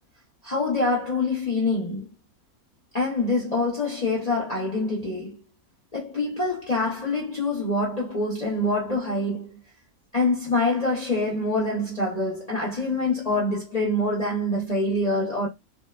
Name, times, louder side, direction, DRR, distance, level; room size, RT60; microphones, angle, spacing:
voice 1, 0.4-2.1 2.9-5.4 5.9-9.6 10.1-15.5, left 2 dB, 40° left, 0.6 m, -25 dB
2.7 x 2.0 x 2.3 m
omnidirectional pair, 1.6 m